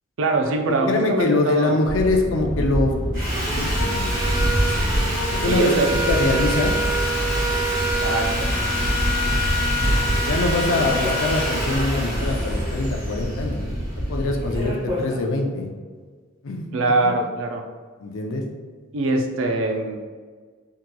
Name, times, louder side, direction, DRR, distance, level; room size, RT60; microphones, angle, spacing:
voice 1, 0.2-1.8 5.5-5.9 7.8-8.5 16.7-17.6 18.9-20.0, right 2 dB, 70° right, 3 dB, 0.4 m, -23 dB
voice 2, 0.7-2.9 3.5-4.4 5.3-5.7 6.1-6.7 10.2-13.6 14.1-15.7 16.4-16.7 17.0-17.1 18.0-18.4, left 2 dB, 75° left, 2 dB, 0.5 m, -23 dB
sound 1, 1.8-14.7, equal, 35° left, 0.7 m, -26 dB
sound 2, 3.1-3.2 3.5-3.6 4.2-7.6 7.9-8.0 8.6-9.1 9.5-11.3 11.9-15.2, left 1 dB, 25° right, 1.3 m, -34 dB
Sawing, 3.1-14.2, equal, 45° right, 1.2 m, -26 dB
3.6 x 2.9 x 2.2 m, 1.5 s
head